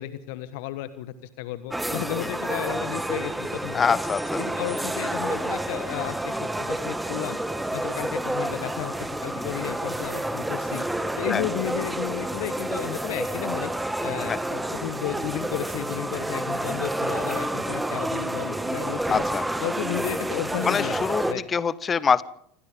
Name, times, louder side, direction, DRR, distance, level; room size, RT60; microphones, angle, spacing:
voice 1, 0.0-4.0 4.4-7.4 7.7-10.8 11.2-13.7 14.0-19.2 19.6-21.4, left 15 dB, 60° left, 13 dB, 1.3 m, -33 dB
sound 1, 1.7-21.3, right 1 dB, 5° right, 1.9 m, -29 dB
voice 2, 3.7-4.4 11.3-11.4 14.3-14.4 19.1-19.4 20.7-22.2, left 6 dB, 25° left, 18 dB, 1.2 m, -24 dB
27.0 x 25.5 x 3.8 m, 0.71 s
figure-of-eight pair, 80°, 0 cm